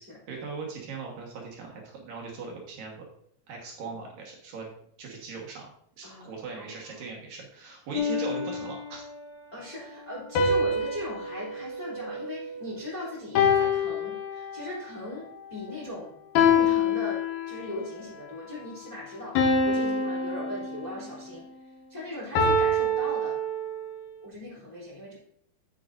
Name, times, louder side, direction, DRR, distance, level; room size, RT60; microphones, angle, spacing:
voice 1, 0.3-3.0 3.5-4.7 5.0-5.7 6.0-9.0, right 4 dB, 65° right, -1 dB, 2.8 m, -39 dB
voice 2, 6.0-6.7 9.5-16.1 16.4-17.2 17.5-21.5 21.9-23.3 24.2-25.1, left 1 dB, 10° left, -6 dB, 2.3 m, -39 dB
sound 1, 8.0-9.2 10.4-12.8 13.4-14.8 16.4-17.8 19.4-21.2 22.4-24.0, left 3 dB, 75° left, 2.9 m, -26 dB
10.5 x 8.5 x 2.6 m, 0.66 s
omnidirectional pair, 4.5 m